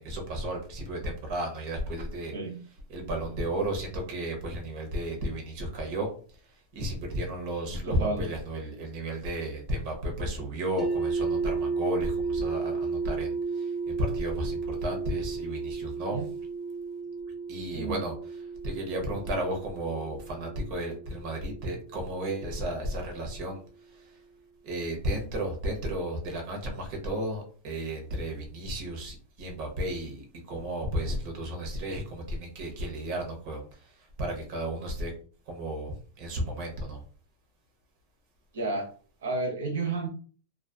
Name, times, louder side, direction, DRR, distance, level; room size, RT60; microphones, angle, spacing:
voice 1, 0.0-2.3 2.9-6.1 6.7-16.2 17.5-18.1 18.6-23.6 23.9-24.1 24.6-35.1 35.5-37.0, right 1 dB, 45° right, 2 dB, 0.8 m, -33 dB
voice 2, 7.8-8.3 16.1-16.2 17.7-18.0 38.5-38.9 39.2-40.1, right 3 dB, 85° right, 2 dB, 0.8 m, -31 dB
sound 1, 10.8-22.7, right 4 dB, ahead, 0.3 m, -33 dB
2.5 x 2.3 x 2.3 m, 0.42 s
supercardioid pair, 155°, 0 cm